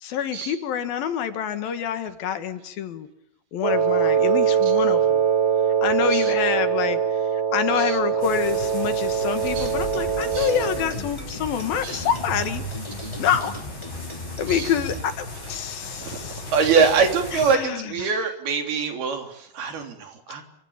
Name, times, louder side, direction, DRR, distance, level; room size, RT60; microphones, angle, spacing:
voice 1, 0.0-3.1 3.5-5.2 5.8-7.0 7.5-12.6 13.2-13.5 14.4-16.5 17.3-18.1, left 8 dB, 70° left, 9 dB, 3.3 m, -27 dB
Wind instrument woodwind instrument, 3.6-10.9, right 7 dB, 25° right, 1.6 m, -22 dB
sound 1, 8.2-17.6, left 2 dB, 30° left, 7.5 m, -37 dB
sound 2, 9.4-15.0, right 1 dB, 10° left, 2.9 m, -36 dB
voice 2, 16.0-20.4, right 5 dB, 75° right, 4 dB, 5.3 m, -24 dB
27.0 x 25.5 x 7.3 m, 0.73 s
omnidirectional pair, 4.5 m